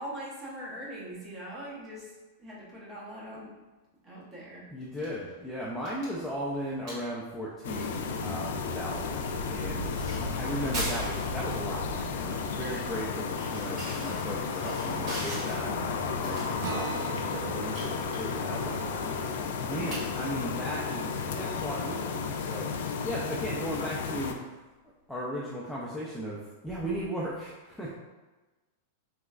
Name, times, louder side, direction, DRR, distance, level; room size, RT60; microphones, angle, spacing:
voice 1, 0.0-2.1 2.4-3.5 4.0-4.6, right 1 dB, 20° right, -5 dB, 0.8 m, -41 dB
voice 2, 4.7-22.7 23.0-24.4 25.1-28.0, equal, ahead, -7 dB, 0.4 m, -37 dB
sound 1, 4.8-23.1, right 1 dB, 40° right, 1.5 m, -44 dB
sound 2, 7.6-24.3, left 5 dB, 75° left, 0.3 m, -33 dB
Acoustic guitar, 16.6-21.5, right 5 dB, 70° right, 0.4 m, -42 dB
3.3 x 2.9 x 2.4 m, 1.2 s
supercardioid pair, 155°, 0 cm